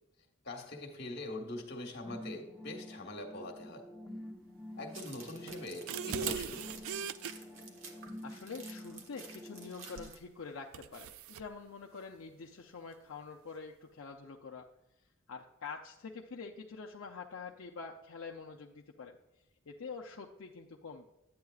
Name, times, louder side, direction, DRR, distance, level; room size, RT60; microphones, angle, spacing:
voice 1, 0.4-3.8 4.8-6.9, left 2 dB, 50° left, 2 dB, 1.3 m, -43 dB
sound 1, 2.1-10.0, left 1 dB, ahead, 0.9 m, -48 dB
sound 2, 4.9-10.2, right 4 dB, 70° right, 1.3 m, -52 dB
sound 3, 5.5-7.3 10.0-10.2 10.7-11.5, right 8 dB, 85° right, 0.4 m, -39 dB
voice 2, 8.2-14.7 15.3-19.2 19.7-21.1, left 5 dB, 75° left, 1 dB, 0.6 m, -46 dB
10.5 x 8.6 x 2.4 m, 0.89 s
head